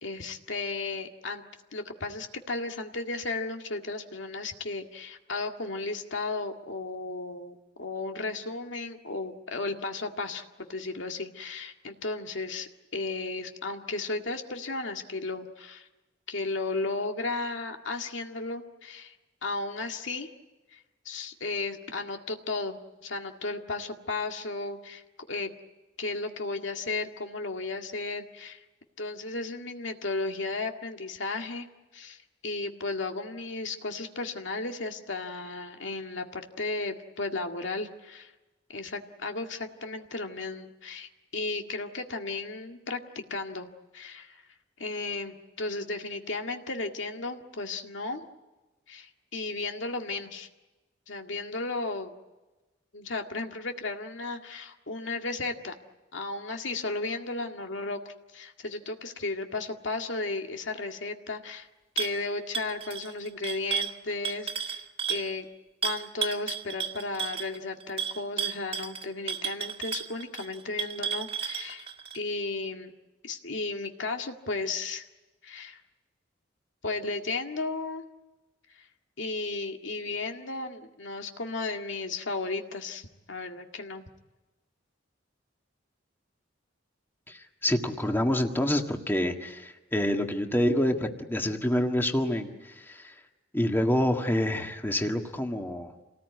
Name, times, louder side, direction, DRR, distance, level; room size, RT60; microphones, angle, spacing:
voice 1, 0.0-1.4 1.7-15.9 16.3-19.2 19.4-20.3 20.7-25.0 25.3-25.5 26.0-28.6 29.0-31.7 31.9-38.3 38.7-43.7 43.9-44.4 44.8-48.3 48.9-50.5 51.1-52.1 52.9-55.7 56.1-61.7 62.0-64.8 65.1-65.5 65.8-71.9 72.1-72.9 73.2-75.1 75.4-75.8 76.8-78.0 78.7-78.9 79.2-84.0, left 3 dB, 80° left, 4 dB, 2.0 m, -34 dB
sound 1, 62.0-62.2 62.5-65.3 65.8-72.2, right 8 dB, 30° right, 2.1 m, -33 dB
voice 2, 87.3-93.1 93.5-96.1, left 1 dB, 10° left, 3 dB, 1.7 m, -27 dB
28.0 x 19.0 x 9.4 m, 1.1 s
head